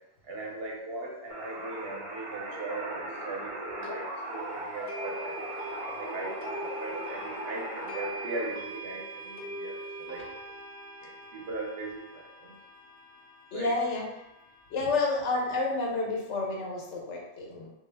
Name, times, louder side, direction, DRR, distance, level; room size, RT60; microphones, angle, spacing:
voice 1, 0.3-4.1 4.3-5.5 6.0-10.2 11.3-12.5 13.5-13.7, right 2 dB, 65° right, -1 dB, 0.8 m, -39 dB
sound 1, 1.3-8.5, right 1 dB, 45° right, 0.4 m, -38 dB
sound 2, 3.8-3.9 4.9-14.9, right 1 dB, 60° left, 0.6 m, -43 dB
voice 2, 13.5-14.1 14.7-17.7, left 3 dB, 85° left, -1 dB, 1.0 m, -30 dB
2.4 x 2.0 x 3.2 m, 0.87 s
omnidirectional pair, 1.2 m